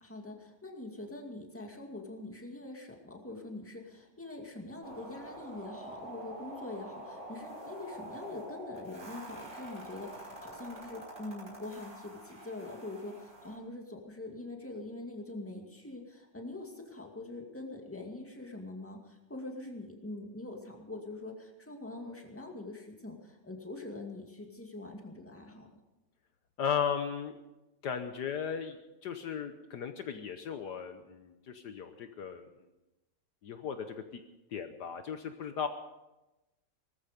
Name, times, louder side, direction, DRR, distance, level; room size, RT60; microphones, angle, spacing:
voice 1, 0.0-25.7, left 2 dB, 5° left, 2 dB, 2.1 m, -44 dB
sound 1, 4.8-13.6, right 1 dB, 30° right, 5.8 m, -46 dB
voice 2, 26.6-27.3 27.8-28.8 29.0-32.5 33.4-34.2 34.5-35.7, left 7 dB, 65° left, 7 dB, 1.5 m, -36 dB
19.0 x 14.0 x 5.2 m, 0.98 s
omnidirectional pair, 2.0 m